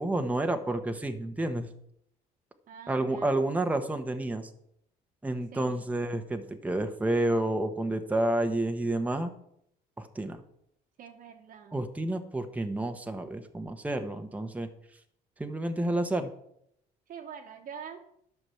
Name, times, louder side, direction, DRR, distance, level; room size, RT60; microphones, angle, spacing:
voice 1, 0.0-1.7 2.9-4.5 5.2-9.3 10.0-10.4 11.7-14.7 15.4-16.3, right 1 dB, 10° right, 6 dB, 1.1 m, -30 dB
voice 2, 2.7-3.5 5.5-5.8 11.0-11.8 17.1-18.0, right 7 dB, 55° right, 1 dB, 1.5 m, -45 dB
11.5 x 6.1 x 7.0 m, 0.72 s
cardioid pair, 110°, 17 cm